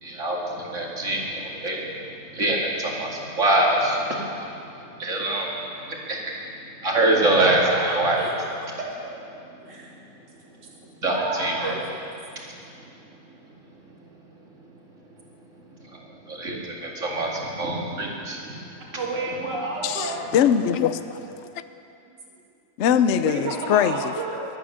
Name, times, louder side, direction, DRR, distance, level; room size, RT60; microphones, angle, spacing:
voice 1, 0.0-2.0 2.3-4.5 5.0-5.6 5.9-6.2 6.8-8.3 11.0-11.8 15.9-16.0 16.3-18.5 18.8-18.9, right 1 dB, 45° right, -2 dB, 2.5 m, -24 dB
voice 2, 7.4-8.3 8.8-8.9 9.6-9.9 11.1-11.8 18.9-20.3 22.1-22.2 23.2-24.4, right 3 dB, 90° right, -2 dB, 2.6 m, -30 dB
voice 3, 19.8-21.2 22.8-24.1, left 8 dB, 60° left, 11 dB, 0.7 m, -21 dB
22.0 x 9.3 x 6.5 m, 2.6 s
omnidirectional pair, 1.8 m